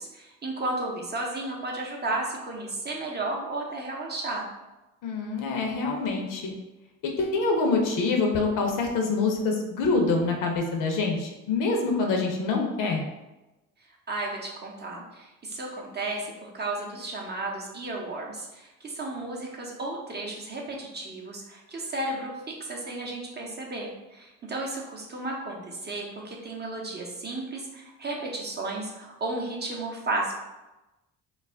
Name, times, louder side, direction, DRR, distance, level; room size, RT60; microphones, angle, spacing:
voice 1, 0.0-4.5 14.1-30.3, right 2 dB, 25° right, -1 dB, 0.6 m, -33 dB
voice 2, 5.0-6.5 7.0-13.0, left 3 dB, 60° left, 2 dB, 0.7 m, -26 dB
2.3 x 2.0 x 3.4 m, 1.0 s
hypercardioid pair, 60°, 38 cm